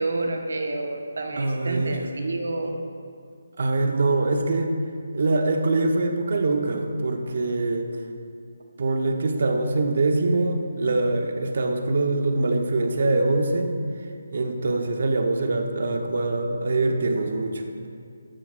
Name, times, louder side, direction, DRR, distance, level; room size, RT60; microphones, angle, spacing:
voice 1, 0.0-2.8, right 2 dB, 75° right, 3 dB, 1.4 m, -29 dB
voice 2, 1.4-2.0 3.6-4.7 5.1-7.9 8.8-13.7 14.3-17.6, right 2 dB, 50° right, 4 dB, 1.1 m, -23 dB
13.0 x 11.5 x 2.6 m, 2.3 s
hypercardioid pair, 175°, 0 cm